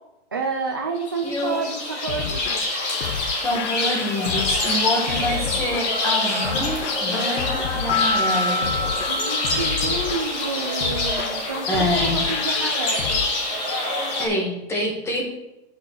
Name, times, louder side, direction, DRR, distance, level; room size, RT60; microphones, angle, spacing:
voice 1, 0.3-2.6 9.1-13.2, right 4 dB, 20° right, 1 dB, 0.4 m, -29 dB
sound 1, 1.0-14.3, left 2 dB, 25° left, 2.2 m, -26 dB
voice 2, 1.2-1.6 3.4-8.6 11.7-12.3 14.2-15.3, left 1 dB, 5° left, 0 dB, 1.4 m, -26 dB
sound 2, 1.8-13.3, left 9 dB, 90° left, 0.7 m, -32 dB
sound 3, 7.9-10.6, left 2 dB, 60° left, 1.7 m, -27 dB
7.6 x 6.3 x 6.3 m, 0.94 s
hypercardioid pair, 180°, 35 cm